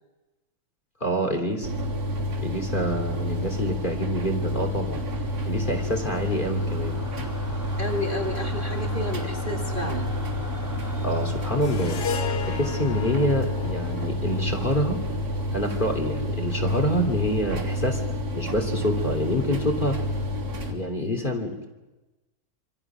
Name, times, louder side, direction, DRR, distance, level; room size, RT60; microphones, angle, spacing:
voice 1, 1.0-1.7 2.4-5.0 5.5-7.0 11.0-12.0 12.4-15.0 15.5-20.0 20.7-21.6, equal, 25° left, 4 dB, 2.9 m, -27 dB
sound 1, 1.6-20.7, left 1 dB, 45° right, 3.6 m, -29 dB
sound 2, 3.4-13.3, equal, 10° right, 3.1 m, -44 dB
voice 2, 7.8-10.1, left 1 dB, 25° right, 1 dB, 2.5 m, -31 dB
sound 3, 11.6-16.3, left 7 dB, 60° left, 1.6 m, -36 dB
27.0 x 26.5 x 6.1 m, 1.1 s
omnidirectional pair, 2.2 m